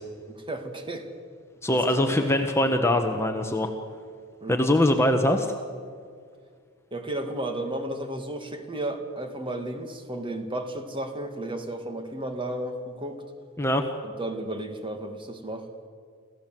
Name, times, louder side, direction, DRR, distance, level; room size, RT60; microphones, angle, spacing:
voice 1, 0.3-1.1 1.7-2.1 4.4-4.7 6.9-13.2 14.0-15.7, right 1 dB, 25° right, 6 dB, 2.0 m, -33 dB
voice 2, 1.6-3.7 4.5-5.5 13.6-13.8, left 1 dB, 10° left, 4 dB, 1.2 m, -22 dB
27.5 x 15.5 x 7.6 m, 2.1 s
head